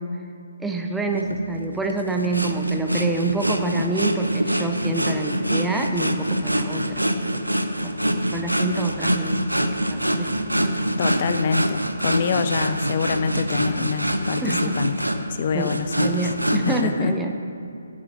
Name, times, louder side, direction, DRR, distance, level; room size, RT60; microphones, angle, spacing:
voice 1, 0.6-7.0 7.3-10.3 14.4-14.7 15.5-17.3, right 2 dB, 5° right, 3 dB, 0.7 m, -27 dB
sound 1, 1.2-16.8, equal, 85° right, 0.9 m, -25 dB
voice 2, 11.0-16.2 16.7-17.1, left 6 dB, 35° left, 9 dB, 0.4 m, -26 dB
8.1 x 7.2 x 8.4 m, 2.6 s
figure-of-eight pair, 140°, 0 cm